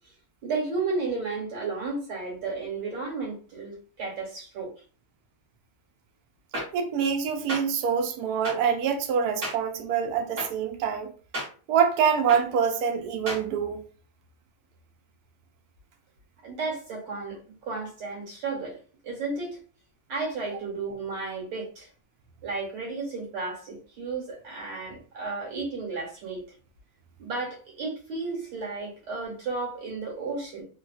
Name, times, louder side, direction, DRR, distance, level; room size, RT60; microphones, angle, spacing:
voice 1, 0.4-4.7 16.4-18.8 19.0-19.6 20.1-21.9 22.4-26.4 27.2-30.6, right 3 dB, 60° right, 1.9 m, -33 dB
sound 1, 6.5-6.6 7.5-7.6 8.4-8.5 9.4-9.5 10.4-10.5 11.3-11.5 12.3-12.4 13.3-13.4, right 1 dB, 40° right, 1.6 m, -31 dB
voice 2, 6.7-11.1 11.7-13.8, right 7 dB, 80° right, 0.8 m, -25 dB
3.8 x 2.3 x 2.3 m
omnidirectional pair, 2.2 m